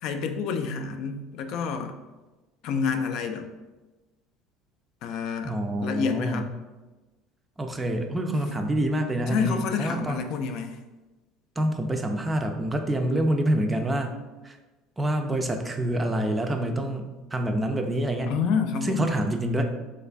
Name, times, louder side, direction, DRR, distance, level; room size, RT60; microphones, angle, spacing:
voice 1, 0.0-2.0 2.6-3.5 5.0-5.6 5.8-6.5 9.3-10.8 18.3-19.1, left 6 dB, 60° left, 7 dB, 0.3 m, -28 dB
voice 2, 5.4-6.5 7.6-10.2 11.6-14.1 14.4-14.6 15.0-17.1 17.3-18.4 18.8-19.6, right 1 dB, 15° right, 5 dB, 0.4 m, -26 dB
3.1 x 2.4 x 3.3 m, 1.1 s
supercardioid pair, 110°, 0 cm